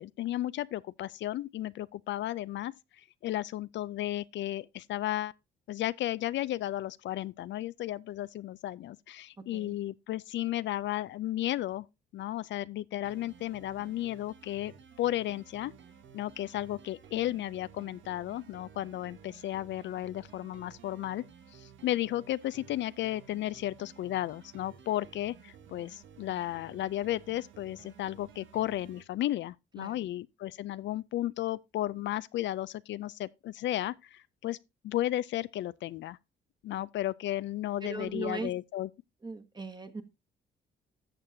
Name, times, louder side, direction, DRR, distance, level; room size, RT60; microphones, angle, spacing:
voice 1, 0.0-5.3 5.7-11.9 12.1-14.7 15.0-15.7 16.1-21.2 21.5-34.6 34.8-36.2 36.6-38.9, left 14 dB, 65° left, 0.4 m, -34 dB
sound 1, 13.0-29.0, right 7 dB, 75° right, 1.2 m, -54 dB
voice 2, 29.8-30.1 37.8-38.5 39.2-40.0, right 3 dB, 20° right, 1.4 m, -39 dB
13.5 x 7.3 x 2.7 m
cardioid pair, 90°, 20 cm